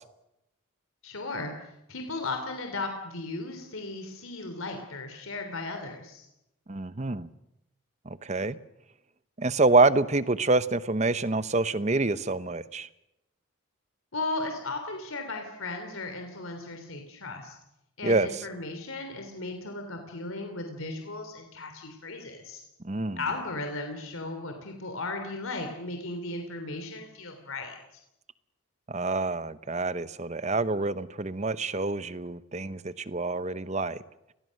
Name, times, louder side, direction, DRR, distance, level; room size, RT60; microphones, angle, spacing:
voice 1, 1.0-6.2 14.1-17.6 18.0-22.6 23.2-27.8, left 2 dB, 70° left, 3.2 m, -36 dB
voice 2, 6.7-7.3 8.1-8.6 9.4-12.9 18.0-18.4 22.8-23.2 28.9-34.0, right 3 dB, 30° right, 0.8 m, -26 dB
30.0 x 20.5 x 6.5 m
head